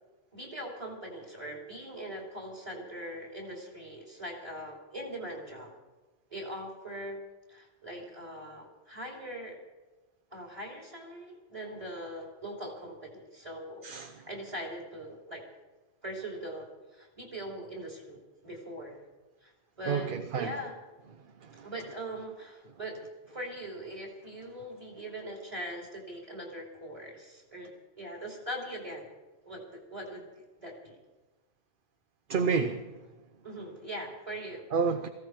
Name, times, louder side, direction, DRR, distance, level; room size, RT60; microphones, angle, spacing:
voice 1, 0.3-5.7 6.3-7.2 7.5-9.6 10.3-13.8 14.2-15.4 16.0-19.0 19.4-20.1 20.3-20.7 21.5-27.7 28.0-29.1 29.4-30.3 30.6-30.9 33.4-34.7, right 1 dB, 30° right, 0 dB, 3.2 m, -41 dB
voice 2, 13.8-14.1 19.9-20.5 21.6-21.7 32.3-32.9 34.7-35.1, right 5 dB, 55° right, 8 dB, 0.9 m, -29 dB
18.0 x 15.5 x 4.7 m, 1.2 s
omnidirectional pair, 1.1 m